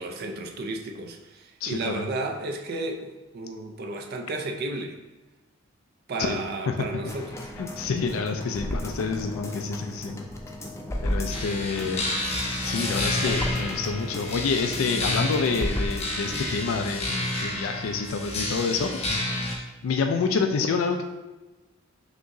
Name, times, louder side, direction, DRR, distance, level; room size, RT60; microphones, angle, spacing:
voice 1, 0.0-5.0 6.1-7.4, right 2 dB, 50° right, 0.4 m, -33 dB
voice 2, 1.6-2.1 6.2-6.4 6.7-6.8 7.6-10.3 11.0-12.1 12.6-19.3 19.8-21.0, left 4 dB, 80° left, 0.4 m, -28 dB
sound 1, 7.1-16.5 16.9-17.0, left 1 dB, 15° left, 0.4 m, -35 dB
sound 2, 11.3-19.5, left 1 dB, 30° left, 0.8 m, -30 dB
5.9 x 2.9 x 2.6 m
head